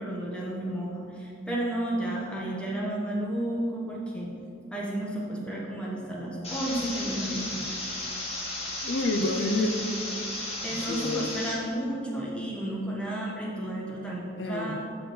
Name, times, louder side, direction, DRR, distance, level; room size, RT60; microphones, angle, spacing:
voice 1, 0.0-4.3 4.7-7.6 10.6-14.7, right 1 dB, 5° left, -4 dB, 1.4 m, -32 dB
sound 1, 6.4-11.5, left 1 dB, 35° left, 1.6 m, -34 dB
voice 2, 8.8-9.9 10.9-11.3 14.4-14.7, left 2 dB, 75° left, 5 dB, 0.6 m, -28 dB
6.2 x 5.0 x 6.3 m, 2.4 s
head